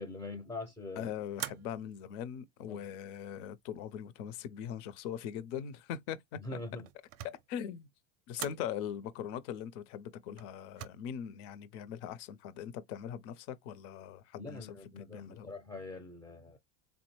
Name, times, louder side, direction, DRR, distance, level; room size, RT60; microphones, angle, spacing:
voice 1, 0.0-1.1 2.7-2.8 6.4-6.9 14.4-16.6, left 2 dB, 10° left, 0.5 m, -43 dB
voice 2, 1.0-6.4 7.5-7.9 8.3-15.5, left 9 dB, 60° left, 0.7 m, -41 dB
sound 1, 1.3-2.0 2.7-3.3 6.6-7.5 8.3-8.7 10.4-10.9, right 14 dB, 55° right, 0.5 m, -44 dB
3.6 x 2.1 x 3.0 m
supercardioid pair, 125°, 40 cm